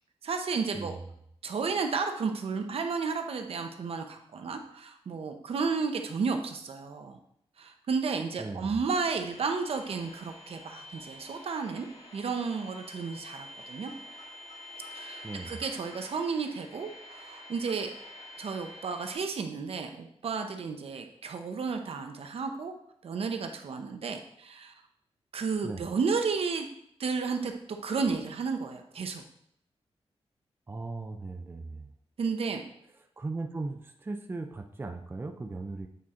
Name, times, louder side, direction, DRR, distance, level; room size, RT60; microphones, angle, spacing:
voice 1, 0.2-1.0 1.4-7.2 7.6-11.8 12.1-13.9 14.9-17.9 18.4-22.7 23.0-24.7 25.3-26.7 27.0-29.2 32.2-32.6, right 5 dB, 65° right, 5 dB, 0.8 m, -32 dB
voice 2, 8.4-8.8 15.2-15.6 25.6-25.8 30.7-31.9 33.2-35.9, right 3 dB, 20° right, 4 dB, 0.5 m, -38 dB
sound 1, 9.2-19.2, left 1 dB, 85° left, 2.7 m, -48 dB
8.5 x 4.3 x 3.7 m, 0.71 s
wide cardioid pair, 135°, 11 cm